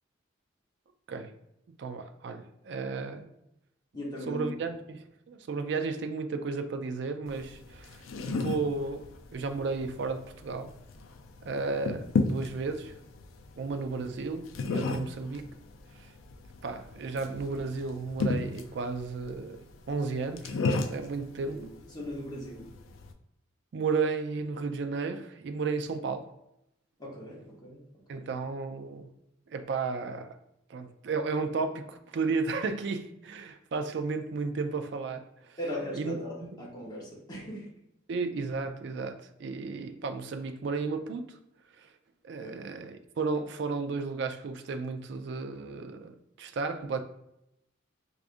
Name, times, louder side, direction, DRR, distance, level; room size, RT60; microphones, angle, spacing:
voice 1, 1.7-3.3 4.3-10.7 11.4-12.9 13.6-15.5 16.0-16.1 16.6-19.6 19.9-20.6 20.9-21.7 23.7-26.3 28.1-29.1 29.5-30.4 30.7-35.6 35.9-36.2 38.1-41.4 41.8-41.9 42.2-47.0, right 4 dB, 60° right, 0.3 m, -33 dB
voice 2, 3.9-4.5 21.5-21.6 21.9-22.7 27.0-27.8 28.1-28.3 35.6-37.7 42.4-42.5, equal, 20° left, 0.9 m, -38 dB
sound 1, 7.3-23.1, left 3 dB, 90° left, 0.4 m, -35 dB
4.7 x 2.4 x 2.5 m
head